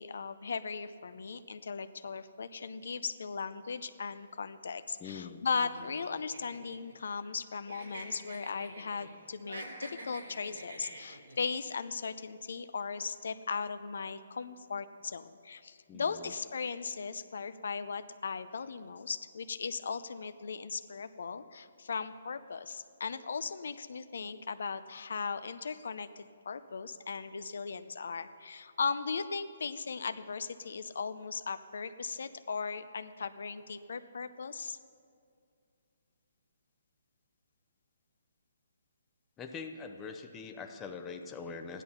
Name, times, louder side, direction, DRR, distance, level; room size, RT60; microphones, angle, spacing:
voice 1, 0.0-34.8, left 5 dB, 70° left, 12 dB, 0.6 m, -38 dB
voice 2, 5.0-5.4 15.9-16.3 39.4-41.8, left 5 dB, 15° left, 5 dB, 0.7 m, -43 dB
sound 1, 5.5-7.4 7.7-9.1 9.4-11.4, right 2 dB, 85° right, 4.3 m, -47 dB
14.0 x 11.0 x 5.6 m, 2.3 s
hypercardioid pair, 160°, 0 cm